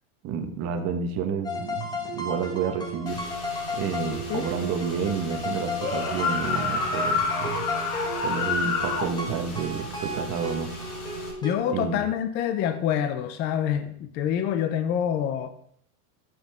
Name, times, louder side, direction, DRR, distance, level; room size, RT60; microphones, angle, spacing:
voice 1, 0.2-3.2 3.7-7.6 8.2-10.7 11.7-12.0, right 6 dB, 35° right, 6 dB, 1.2 m, -30 dB
sound 1, 1.4-11.5, left 1 dB, 10° left, 1.3 m, -34 dB
Car / Engine, 3.1-11.3, right 1 dB, 55° left, 4.5 m, -39 dB
sound 2, 5.7-9.1, left 5 dB, 80° left, 2.1 m, -27 dB
voice 2, 11.4-15.5, left 9 dB, 25° left, 10 dB, 0.4 m, -26 dB
11.5 x 7.7 x 3.5 m, 0.64 s
supercardioid pair, 160°, 44 cm